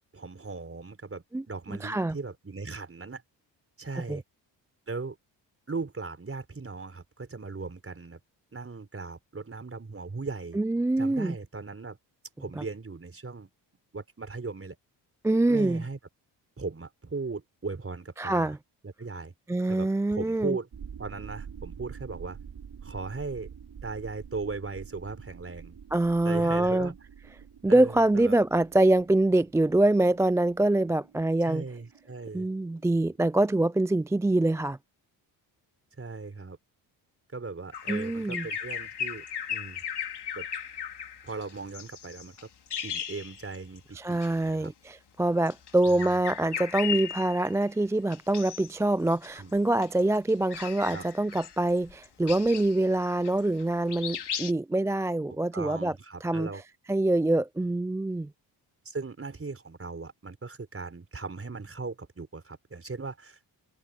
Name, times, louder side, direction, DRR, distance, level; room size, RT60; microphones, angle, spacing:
voice 1, 0.0-3.2 3.8-4.2 4.9-5.2 5.7-8.2 8.5-10.6 11.0-12.0 12.4-13.5 13.9-14.8 15.5-16.0 16.6-18.5 18.8-19.3 19.7-20.7 21.0-22.4 22.8-23.5 23.8-25.8 26.2-26.9 27.7-28.3 31.4-32.5 36.0-36.6 37.3-39.8 40.4-40.5 41.2-42.4 42.8-44.7 45.9-46.0 49.4-49.6 50.9-51.1 55.5-56.6 58.8-63.5, right 4 dB, 30° right, 4.3 m, -38 dB
voice 2, 1.8-2.1 4.1-4.2 10.5-11.4 12.6-12.7 15.2-15.8 18.2-18.6 19.5-20.6 25.9-26.9 27.6-31.6 32.3-34.8 37.9-38.5 43.9-55.9 56.2-56.5 56.9-58.3, right 2 dB, 5° right, 0.4 m, -25 dB
sound 1, 20.7-34.0, right 7 dB, 50° right, 5.2 m, -47 dB
Bird vocalization bird call bird song, 37.7-43.8 44.1-44.3 45.4-47.6 48.1-48.8 49.1-53.6 53.9-54.5, left 8 dB, 55° left, 5.1 m, -37 dB
supercardioid pair, 55°, 48 cm